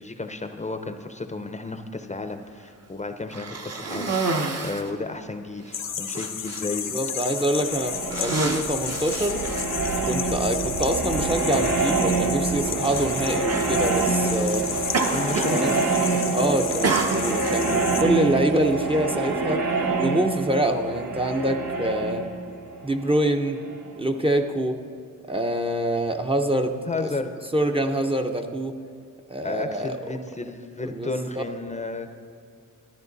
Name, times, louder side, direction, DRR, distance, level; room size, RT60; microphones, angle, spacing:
voice 1, 0.0-4.2 4.6-6.9 15.1-15.9 16.2-16.6 26.9-27.3 29.4-32.1, left 3 dB, 20° left, 7 dB, 0.7 m, -33 dB
Cough, 3.3-4.9 5.7-5.8 6.1-6.6 7.4-7.6 8.0-10.0 10.9-11.0 12.8-13.1 13.5-13.7 14.9-15.6 15.9-16.3 16.8-17.6, right 3 dB, 50° right, 1.1 m, -28 dB
sound 1, 5.7-18.0, left 7 dB, 80° left, 1.1 m, -32 dB
voice 2, 6.9-9.4 10.0-14.7 15.5-15.8 16.3-19.7 20.0-22.2 22.8-23.6 24.0-24.8 25.3-27.1 27.5-28.7 29.3-30.0 30.8-31.4, right 1 dB, 15° right, 4 dB, 0.7 m, -25 dB
sound 2, 7.2-23.9, right 3 dB, 90° right, 1.3 m, -27 dB
13.5 x 10.5 x 4.0 m, 2.3 s
cardioid pair, 85°, 32 cm